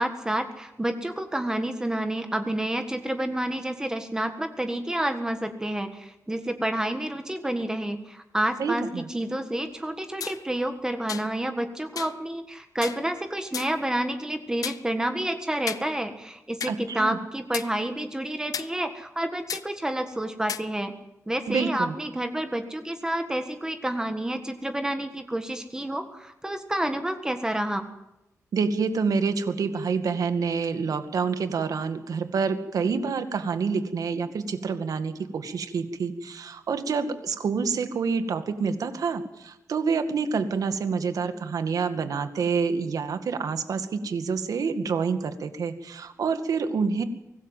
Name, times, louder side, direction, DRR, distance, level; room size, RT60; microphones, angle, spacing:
voice 1, 0.0-20.9 21.3-27.8, right 1 dB, 10° right, 6 dB, 1.6 m, -29 dB
voice 2, 8.6-9.1 16.7-17.2 21.5-22.0 28.5-47.0, right 5 dB, 85° right, 9 dB, 2.1 m, -27 dB
sound 1, 10.2-10.4 11.1-11.3 12.0-12.2 12.8-13.0 13.5-13.8 14.6-14.8 15.7-15.9 16.6-16.7 17.5-17.7 18.5-18.7 19.5-19.6 20.5-20.6, left 7 dB, 85° left, 0.9 m, -33 dB
24.5 x 19.0 x 7.5 m, 0.93 s
wide cardioid pair, 170°, 6 cm